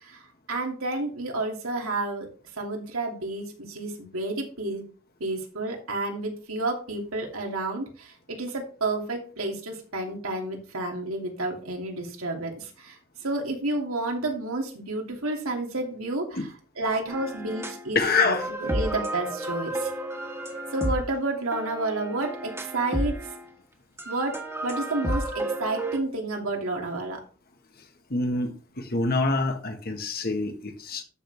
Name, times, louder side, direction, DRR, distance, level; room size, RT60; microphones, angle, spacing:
voice 1, 0.0-2.3 2.6-4.8 5.2-12.9 13.2-16.4 16.8-18.0 18.2-19.9 20.7-23.2 24.0-27.2, right 2 dB, 80° right, 2.8 m, -30 dB
sound 1, 17.1-17.9 18.2-23.5 24.0-26.0, right 1 dB, 15° right, 1.7 m, -32 dB
voice 2, 17.9-18.5 28.1-31.0, left 3 dB, 45° left, 1.7 m, -26 dB
13.0 x 6.3 x 3.5 m
head